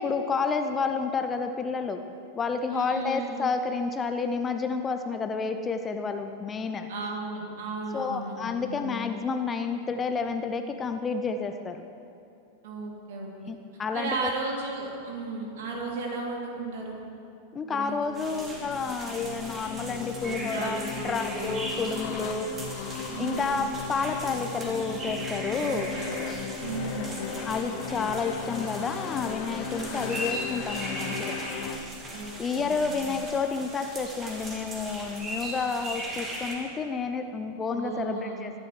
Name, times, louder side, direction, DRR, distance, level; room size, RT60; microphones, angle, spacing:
voice 1, 0.0-2.0 2.4-6.9 7.9-11.8 13.5-14.3 17.5-22.5 23.2-25.9 27.4-31.4 32.4-38.5, left 4 dB, 20° left, 7 dB, 0.7 m, -30 dB
voice 2, 2.7-3.3 6.9-9.0 12.6-13.5 13.9-17.0 17.7-18.4 20.2-21.5 23.1-23.6 25.6-26.1 26.6-27.2 32.1-33.2 37.7-38.4, right 3 dB, 55° right, -1 dB, 2.8 m, -35 dB
sound 1, 18.1-36.6, right 1 dB, 20° right, 2.8 m, -39 dB
sound 2, 18.5-31.8, left 6 dB, 45° left, 0.9 m, -37 dB
23.5 x 11.5 x 3.3 m, 2.7 s
figure-of-eight pair, 90°, 0 cm